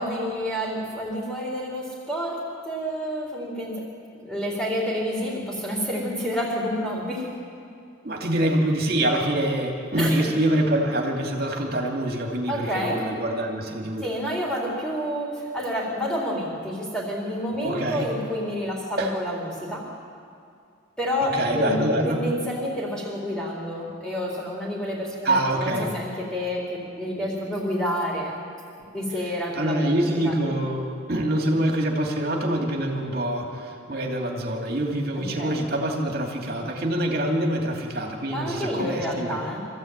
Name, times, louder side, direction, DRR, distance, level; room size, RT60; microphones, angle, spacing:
voice 1, 0.0-3.9 4.2-7.3 10.0-10.2 12.5-13.1 14.0-19.9 21.0-21.8 22.0-28.4 28.9-30.4 35.2-35.6 38.3-39.6, equal, 5° left, -4 dB, 4.1 m, -29 dB
voice 2, 8.0-14.1 17.6-18.1 19.0-19.2 21.2-22.2 25.2-25.9 29.2-39.4, right 1 dB, 50° right, 1 dB, 2.7 m, -25 dB
25.0 x 15.0 x 8.9 m, 2.4 s
head